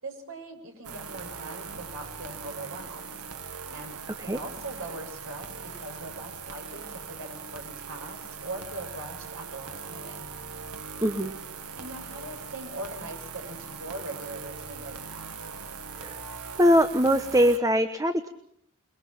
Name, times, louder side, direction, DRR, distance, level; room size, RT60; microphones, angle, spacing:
voice 1, 0.0-3.2 3.7-10.2 11.8-15.3, right 2 dB, 65° right, 3 dB, 7.1 m, -41 dB
sound 1, 0.8-17.6, right 5 dB, 85° right, 1.9 m, -40 dB
voice 2, 4.1-4.4 11.0-11.3 16.0-16.2 16.6-18.3, equal, 15° right, 10 dB, 1.0 m, -22 dB
27.5 x 22.5 x 5.9 m, 0.72 s
head